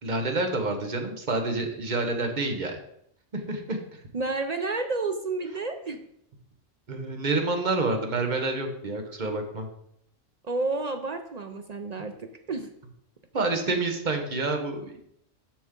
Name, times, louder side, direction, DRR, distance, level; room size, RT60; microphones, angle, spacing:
voice 1, 0.0-2.8 3.3-4.0 6.9-9.7 13.3-15.0, right 3 dB, 40° right, 4 dB, 1.1 m, -28 dB
voice 2, 4.1-6.0 10.4-12.7, right 3 dB, 60° right, 6 dB, 0.4 m, -30 dB
7.2 x 6.2 x 3.7 m, 0.72 s
omnidirectional pair, 1.4 m